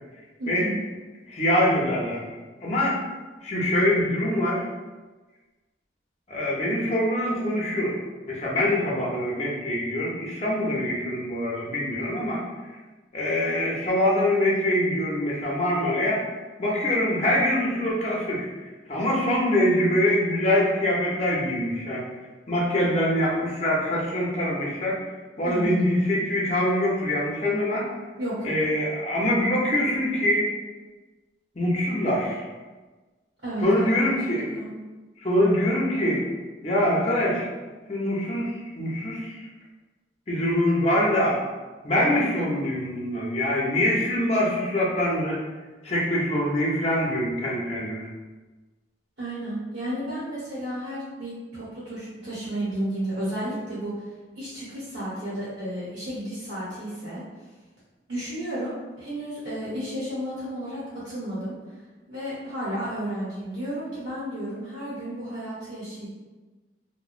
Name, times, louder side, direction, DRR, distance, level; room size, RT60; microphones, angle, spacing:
voice 1, 0.4-0.8 25.4-25.7 28.2-28.5 33.4-34.0 34.4-34.7 49.2-53.9 54.4-57.2 58.1-61.5 62.1-66.1, right 1 dB, 85° right, -10 dB, 0.9 m, -32 dB
voice 2, 1.3-2.2 2.6-3.0 3.4-4.6 6.3-7.9 8.3-12.4 13.1-16.2 16.6-18.5 18.9-22.0 22.5-25.0 25.4-27.9 28.4-30.5 31.6-32.4 33.6-34.4 35.2-36.2 36.6-37.5 37.9-39.5 40.3-41.4 41.8-45.4 45.8-48.1, left 1 dB, 35° left, -4 dB, 0.6 m, -24 dB
3.0 x 2.1 x 2.4 m, 1.3 s
head